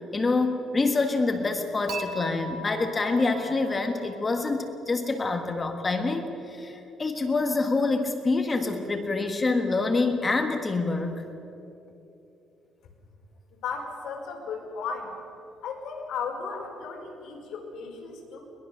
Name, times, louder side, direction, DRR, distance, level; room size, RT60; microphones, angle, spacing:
voice 1, 0.1-11.2, left 3 dB, 20° left, 5 dB, 1.6 m, -26 dB
Dishes pots and pans / Chink clink, 1.9-5.0, right 3 dB, 65° right, 2.0 m, -40 dB
voice 2, 13.6-15.1 15.6-18.4, left 5 dB, 70° left, -1 dB, 5.3 m, -35 dB
22.5 x 21.0 x 6.7 m, 2.9 s
cardioid pair, 145°, 0 cm